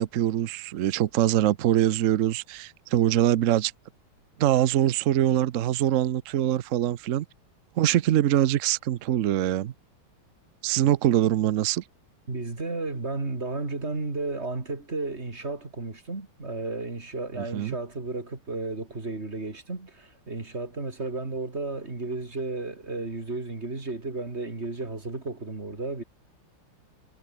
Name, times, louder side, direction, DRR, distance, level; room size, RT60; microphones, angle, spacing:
voice 1, 0.0-3.7 4.4-7.3 7.8-9.7 10.6-11.8 17.4-17.8, right 12 dB, 80° right, 0.7 m, -23 dB
voice 2, 12.3-26.0, right 3 dB, 30° right, 3.5 m, -33 dB
omnidirectional pair, 2.3 m